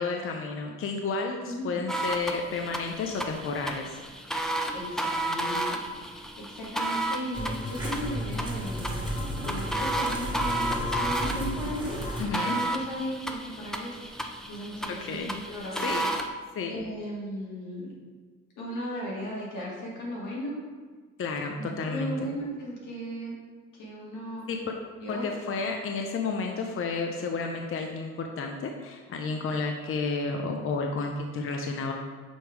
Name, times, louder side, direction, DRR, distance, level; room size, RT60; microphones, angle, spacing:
voice 1, 0.0-4.0 12.2-12.6 14.9-15.3 15.7-16.0 16.5-16.8 21.2-22.3 24.5-24.6 25.1-31.9, left 4 dB, 45° left, 2 dB, 0.6 m, -31 dB
voice 2, 1.4-1.8 4.7-6.3 6.5-8.9 9.4-12.1 12.4-16.0 16.7-18.0 18.6-20.6 21.6-23.3 23.7-24.4 25.0-25.2, equal, 85° left, -4 dB, 1.8 m, -36 dB
sound 1, 1.9-16.3, right 1 dB, ahead, 0.4 m, -33 dB
sound 2, 7.3-12.2, equal, 15° right, 1.6 m, -33 dB
6.3 x 3.4 x 4.6 m, 1.4 s
cardioid pair, 90°, 30 cm